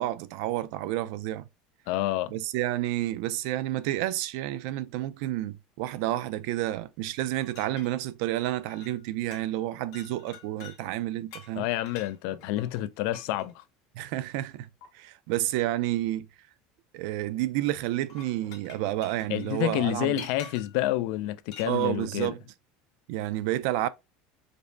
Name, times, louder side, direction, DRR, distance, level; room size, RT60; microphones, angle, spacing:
voice 1, 0.0-1.5 2.3-11.7 13.9-14.7 14.9-16.3 16.9-20.3 21.7-22.4 23.1-23.9, right 14 dB, 65° right, 0.3 m, -30 dB
voice 2, 1.9-2.3 11.6-13.6 19.3-22.3, left 14 dB, 60° left, 0.3 m, -29 dB
sound 1, 7.4-9.1 9.3-9.6 9.9-10.8 11.3-13.5 14.8-14.9 17.9-20.8 21.5-21.8, left 7 dB, 85° left, 1.4 m, -48 dB
5.0 x 2.0 x 2.6 m
cardioid pair, 160°, 3 cm